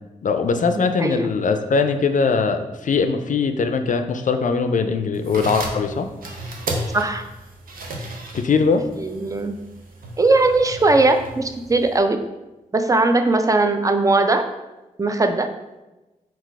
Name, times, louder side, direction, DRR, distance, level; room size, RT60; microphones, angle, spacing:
voice 1, 0.2-6.1 8.3-8.8, left 5 dB, 60° left, 7 dB, 0.4 m, -21 dB
voice 2, 0.7-1.2 6.9-7.2 9.0-9.5 10.2-12.2 12.7-14.5 15.0-15.5, right 2 dB, 20° right, 7 dB, 0.4 m, -19 dB
sound 1, 5.1-12.0, right 1 dB, 75° right, 0.7 m, -33 dB
3.9 x 2.4 x 4.6 m, 1.1 s
cardioid pair, 45°, 15 cm